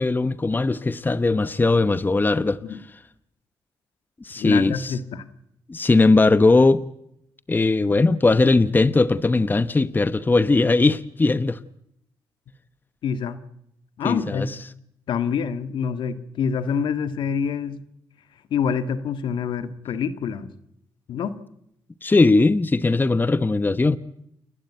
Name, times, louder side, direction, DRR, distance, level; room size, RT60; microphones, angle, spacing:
voice 1, 0.0-2.6 4.2-5.0 5.7-6.8 7.5-11.6 14.0-14.5 22.0-24.0, left 3 dB, 25° left, 0.9 m, -19 dB
voice 2, 4.4-5.2 13.0-13.4 14.0-14.5 15.1-17.8 18.5-20.5 21.1-21.3, left 7 dB, 75° left, 1.7 m, -26 dB
29.0 x 12.0 x 9.3 m
supercardioid pair, 65°, 8 cm